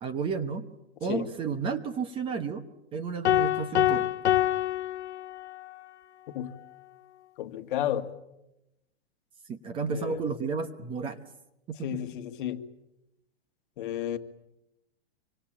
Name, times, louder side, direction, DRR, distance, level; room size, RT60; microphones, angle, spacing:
voice 1, 0.0-0.7 1.0-2.6 2.9-4.1 9.5-11.2 11.7-12.0, right 5 dB, 15° right, 1.1 m, -32 dB
sound 1, 3.2-5.7, left 12 dB, 80° left, 1.6 m, -26 dB
voice 2, 7.4-8.1 9.9-10.2 11.8-12.6 13.8-14.2, left 11 dB, 50° left, 1.9 m, -32 dB
26.0 x 25.5 x 8.9 m
hypercardioid pair, 160°, 33 cm